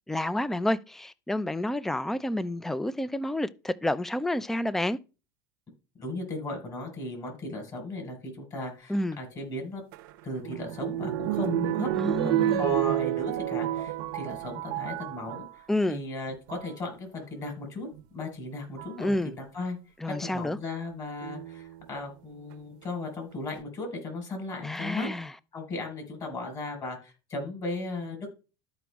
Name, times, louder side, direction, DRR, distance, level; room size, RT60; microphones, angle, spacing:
voice 1, 0.1-5.0 8.9-9.2 12.0-12.7 15.7-16.0 19.0-19.3 20.0-20.6 24.6-25.3, left 1 dB, 5° left, 0.4 m, -29 dB
voice 2, 6.0-9.8 10.2-11.9 12.2-17.9 18.1-19.8 20.1-25.1 25.5-28.3, left 2 dB, 35° left, 4.5 m, -36 dB
sound 1, 9.9-15.6 16.3-16.7 18.0-18.1 18.8-19.1 21.2-21.8 22.5-22.6 22.8-22.9, right 14 dB, 75° right, 0.7 m, -30 dB
13.5 x 5.1 x 2.3 m
supercardioid pair, 110°, 11 cm